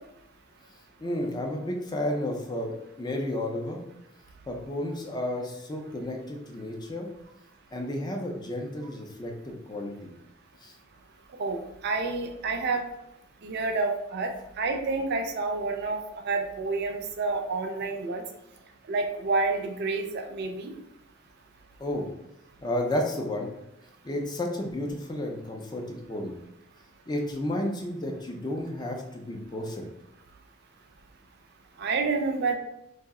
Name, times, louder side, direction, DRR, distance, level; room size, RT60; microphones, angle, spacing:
voice 1, 1.0-3.8 4.5-7.1 7.7-10.1 10.6-10.7 21.8-22.1 22.6-23.5 24.0-26.3 27.1-29.8, left 1 dB, 20° left, 1 dB, 0.4 m, -32 dB
voice 2, 11.4-12.8 13.4-16.0 16.3-18.2 18.9-20.7 31.8-32.5, right 3 dB, 50° right, 4 dB, 0.4 m, -29 dB
2.7 x 2.0 x 3.5 m, 0.84 s
head